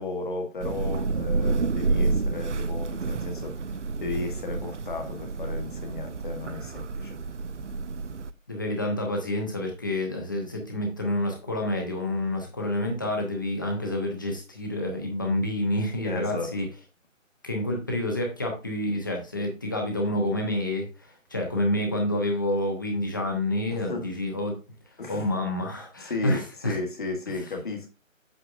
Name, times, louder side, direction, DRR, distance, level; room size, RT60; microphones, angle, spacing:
voice 1, 0.0-3.7 4.0-7.2 16.0-16.5 23.7-24.1 25.0-25.3 26.0-27.9, left 3 dB, 40° left, 1.5 m, -34 dB
Thunder / Rain, 0.6-8.3, right 3 dB, 60° right, 0.5 m, -29 dB
voice 2, 8.5-16.7 17.4-24.6 25.1-26.8, left 1 dB, 15° left, 0.8 m, -28 dB
7.9 x 6.8 x 2.4 m
figure-of-eight pair, 155°, 40 cm